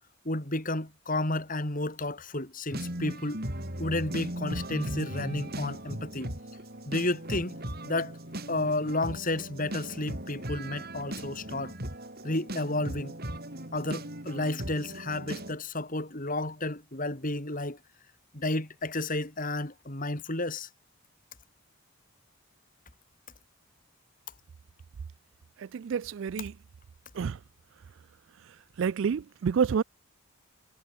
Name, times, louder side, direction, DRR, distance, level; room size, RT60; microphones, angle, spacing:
voice 1, 0.3-3.4 3.8-6.3 6.9-7.6 7.8-8.2 8.5-11.7 12.2-13.1 13.7-17.8 18.3-20.7, left 2 dB, 40° left, 3.5 m, -32 dB
sound 1, 2.7-15.5, right 1 dB, 45° right, 7.1 m, -38 dB
voice 2, 25.7-26.5 27.2-27.4 28.8-29.8, right 6 dB, 60° right, 0.3 m, -28 dB
head